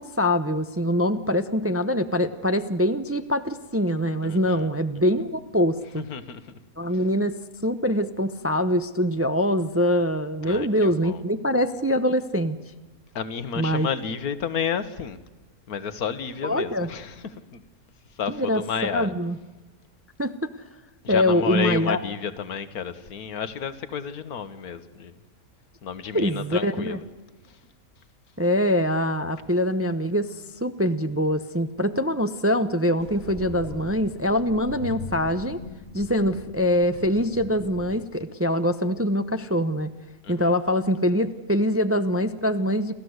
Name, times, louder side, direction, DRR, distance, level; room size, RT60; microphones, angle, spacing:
voice 1, 0.0-6.0 6.8-12.6 13.6-13.9 16.4-16.9 18.3-19.4 20.2-20.5 21.1-22.0 26.1-27.0 28.4-30.4 30.6-35.6 35.9-39.9 40.3-42.9, equal, 15° right, 10 dB, 0.5 m, -24 dB
voice 2, 4.2-4.7 6.0-6.6 10.4-11.2 13.1-15.2 15.7-17.6 18.1-19.1 21.0-25.2 25.8-27.0 27.4-27.6 40.2-40.5, left 7 dB, 85° left, 12 dB, 1.7 m, -31 dB
sound 1, 33.0-38.0, left 3 dB, 45° left, 1.8 m, -40 dB
29.5 x 13.5 x 7.9 m, 1.2 s
omnidirectional pair, 1.5 m